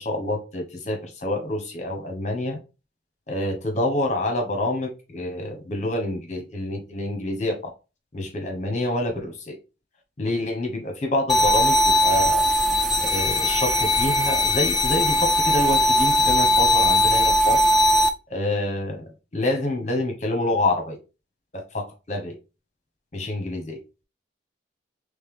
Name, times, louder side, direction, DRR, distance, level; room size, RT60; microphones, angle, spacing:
voice 1, 0.0-2.6 3.3-7.7 8.1-9.6 10.2-12.5 13.0-17.6 18.3-21.0 21.5-22.3 23.1-23.8, left 1 dB, 35° left, 4 dB, 1.0 m, -27 dB
sound 1, 11.3-18.1, equal, ahead, 0.4 m, -19 dB
4.3 x 3.1 x 3.6 m, 0.30 s
head